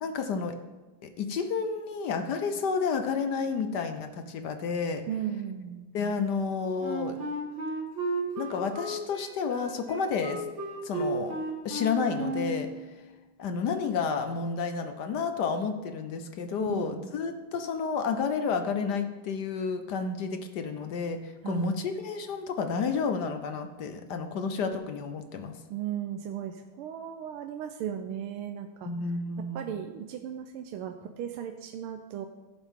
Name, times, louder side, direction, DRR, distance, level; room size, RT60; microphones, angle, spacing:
voice 1, 0.0-0.5 1.0-5.0 5.9-7.2 8.4-10.4 10.8-12.7 13.4-25.6 28.9-29.7, left 5 dB, 65° left, 7 dB, 1.1 m, -31 dB
voice 2, 5.1-5.8 16.6-17.2 21.4-21.8 25.7-28.9 29.5-32.3, right 9 dB, 80° right, 6 dB, 1.5 m, -36 dB
Wind instrument woodwind instrument, 6.8-12.7, right 1 dB, 60° right, 2.6 m, -33 dB
16.0 x 7.3 x 3.7 m, 1.2 s
omnidirectional pair, 2.4 m